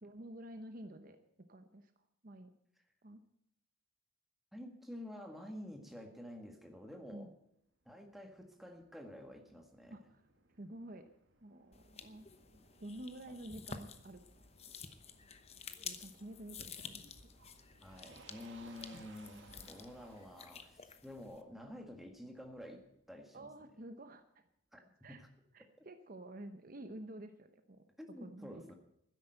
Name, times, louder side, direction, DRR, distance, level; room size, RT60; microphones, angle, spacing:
voice 1, 0.0-1.9 2.2-2.5 3.0-3.2 7.1-7.3 9.9-10.2 10.6-11.1 11.4-12.3 12.8-14.5 15.8-17.0 23.3-24.4 25.0-25.2 25.5-27.9 28.2-28.7, right 1 dB, 45° right, 8 dB, 0.9 m, -50 dB
voice 2, 4.5-7.3 7.9-10.0 13.3-13.4 17.8-23.5 24.7-24.8 25.1-25.3 25.8-25.9 28.0-28.7, left 1 dB, ahead, 3 dB, 1.7 m, -50 dB
Motor vehicle (road), 7.8-22.9, right 3 dB, 65° right, 1.9 m, -64 dB
sound 1, 11.7-21.4, left 6 dB, 30° left, 0.9 m, -51 dB
12.5 x 10.5 x 7.9 m, 0.77 s
head